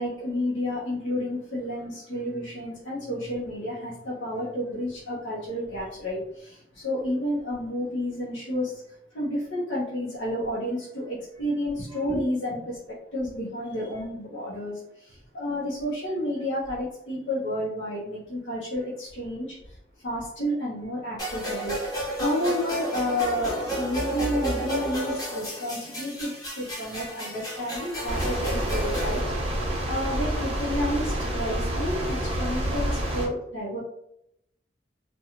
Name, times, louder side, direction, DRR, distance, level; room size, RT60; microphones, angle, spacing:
voice 1, 0.0-12.8 13.1-19.8 20.0-21.8 22.2-29.2 29.5-33.8, left 1 dB, 85° left, -7 dB, 0.7 m, -31 dB
sound 1, 21.2-29.2, right 1 dB, 20° left, 0.8 m, -32 dB
sound 2, 28.1-33.3, right 1 dB, 35° right, 0.6 m, -28 dB
2.4 x 2.2 x 2.9 m, 0.78 s
head